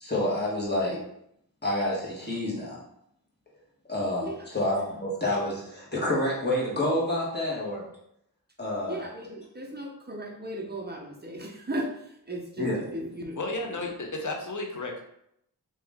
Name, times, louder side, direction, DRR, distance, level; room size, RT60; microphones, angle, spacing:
voice 1, 0.0-1.0 1.6-2.8 3.9-7.8 8.6-9.0 12.6-12.8, left 1 dB, 25° left, -4 dB, 1.4 m, -28 dB
voice 2, 4.2-4.5 8.9-13.4 13.7-13.9, right 1 dB, 25° right, 0 dB, 0.7 m, -36 dB
voice 3, 13.4-15.0, left 2 dB, 50° left, 1 dB, 0.8 m, -33 dB
3.1 x 2.9 x 3.5 m, 0.74 s
wide cardioid pair, 45°, 39 cm